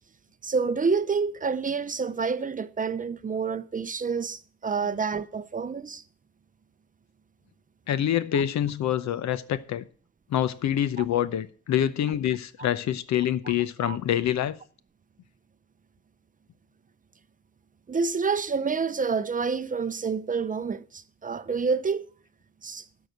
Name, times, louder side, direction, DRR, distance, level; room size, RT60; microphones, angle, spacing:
voice 1, 0.4-6.0 8.3-8.4 13.8-14.0 17.9-22.1 22.6-22.8, right 5 dB, 25° right, 0.6 m, -28 dB
voice 2, 7.9-9.8 10.3-14.6, left 10 dB, 65° left, 0.8 m, -26 dB
12.5 x 4.8 x 7.9 m
cardioid pair, 90°, 30 cm